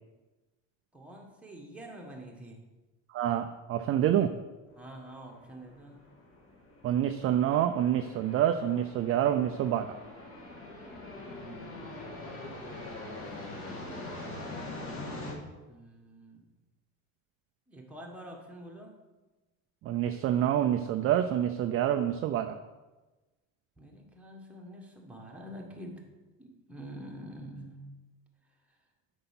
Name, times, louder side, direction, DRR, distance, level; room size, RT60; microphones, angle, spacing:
voice 1, 0.9-2.6 4.7-6.0 11.2-12.7 13.1-14.8 15.7-16.6 17.7-19.0 23.8-26.1 26.4-27.9, right 1 dB, 5° right, -1 dB, 1.4 m, -47 dB
voice 2, 3.1-4.3 6.8-10.0 19.8-22.6, right 10 dB, 40° right, 7 dB, 0.4 m, -27 dB
sound 1, 4.7-15.3, left 2 dB, 35° left, 1.9 m, -43 dB
7.9 x 5.5 x 5.8 m, 1.2 s
cardioid pair, 135°, 37 cm